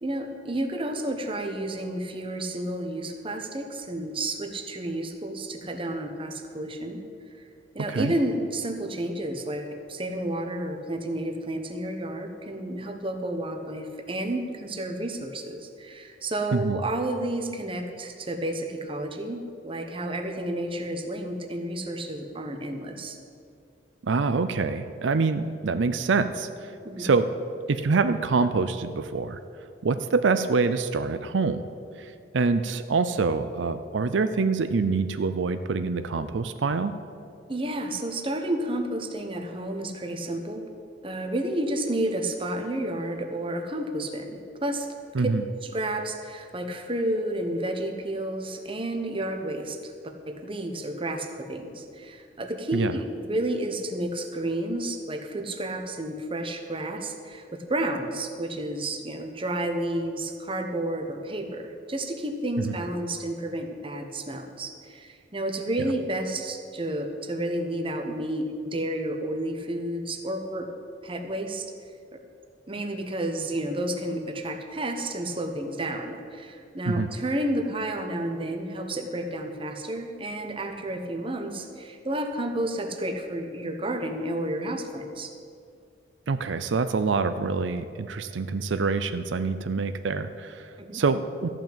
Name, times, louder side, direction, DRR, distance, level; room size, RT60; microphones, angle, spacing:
voice 1, 0.0-7.1 7.7-23.2 26.8-27.1 37.5-40.7 41.0-44.9 45.2-45.3 45.7-70.7 71.0-71.7 72.1-72.2 72.7-85.3 90.8-91.0, right 1 dB, 30° right, 5 dB, 1.1 m, -31 dB
voice 2, 24.0-26.7 27.0-27.3 27.7-29.4 29.8-31.6 32.0-36.9 45.1-45.4 52.7-52.9 62.6-62.7 76.9-77.1 86.3-91.5, right 4 dB, 85° right, 10 dB, 0.5 m, -25 dB
14.0 x 6.0 x 8.9 m, 2.4 s
head